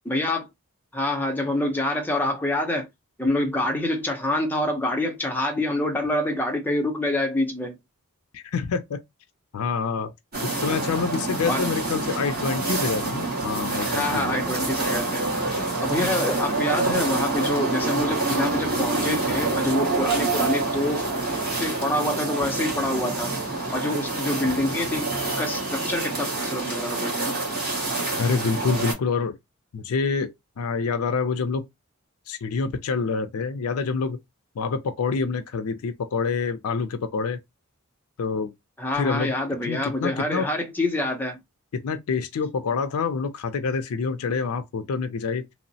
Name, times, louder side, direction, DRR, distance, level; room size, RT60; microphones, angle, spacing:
voice 1, 0.1-0.5 0.9-2.9 3.2-7.7 11.5-11.7 13.9-15.2 15.8-21.0 21.6-23.3 23.7-25.1 25.4-27.4 38.8-41.4, left 1 dB, 10° left, 0.6 m, -26 dB
voice 2, 8.3-9.0 9.5-10.1 10.4-14.4 28.2-29.4 29.7-31.7 32.3-34.2 34.6-37.4 38.2-38.5 38.9-39.3 39.6-40.5 41.7-45.5, left 5 dB, 85° left, 0.4 m, -27 dB
sound 1, 10.3-28.9, right 2 dB, 45° right, 1.3 m, -27 dB
3.0 x 2.0 x 2.6 m
head